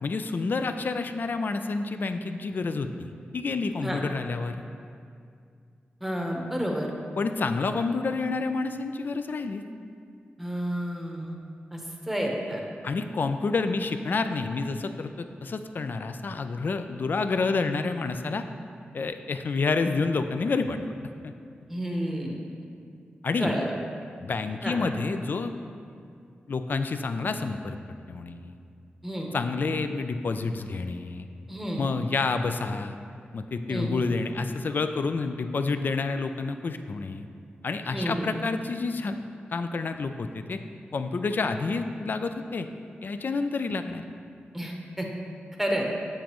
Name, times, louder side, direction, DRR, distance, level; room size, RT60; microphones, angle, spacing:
voice 1, 0.0-4.6 7.2-9.6 12.8-18.4 18.9-20.8 21.2-21.3 23.2-23.6 24.2-25.5 26.5-27.8 28.1-28.6 29.3-31.3 31.8-33.0 33.3-37.3 37.6-39.2 39.5-40.6 40.9-42.7 43.0-44.0, left 4 dB, 55° left, 8 dB, 0.3 m, -29 dB
voice 2, 6.0-6.9 10.4-11.4 11.7-12.6 21.7-22.4 23.4-23.7 24.6-24.8 29.0-29.3 31.5-31.8 33.7-33.9 37.9-38.3 44.5-45.1 45.6-45.9, equal, 5° right, 0 dB, 0.9 m, -30 dB
7.2 x 5.0 x 3.0 m, 2.3 s
cardioid pair, 70°, 4 cm